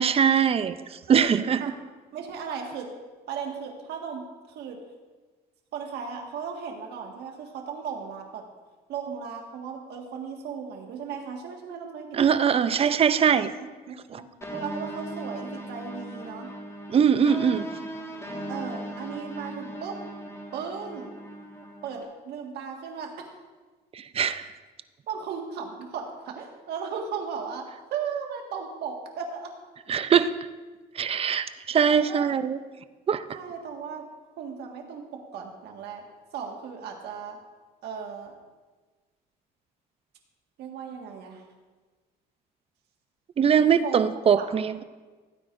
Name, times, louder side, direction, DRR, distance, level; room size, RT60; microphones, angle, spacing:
voice 1, 0.0-1.6 12.1-13.5 14.1-14.2 16.9-17.6 23.9-24.5 29.9-30.3 30.9-32.6 33.1-33.4 43.4-44.8, right 7 dB, 35° right, 12 dB, 0.5 m, -22 dB
voice 2, 2.1-2.9 3.3-4.8 5.7-8.4 8.9-12.3 13.6-14.2 14.5-16.5 18.5-20.0 20.5-21.1 21.8-23.1 25.1-29.5 31.9-32.3 33.3-34.1 34.4-36.0 36.3-37.4 37.8-38.3 40.6-41.4 43.8-44.1 44.4-44.5, right 6 dB, 75° right, 2 dB, 1.8 m, -36 dB
sound 1, 14.4-22.0, right 1 dB, 15° left, 1.7 m, -38 dB
16.0 x 9.3 x 2.6 m, 1.3 s
cardioid pair, 110°, 17 cm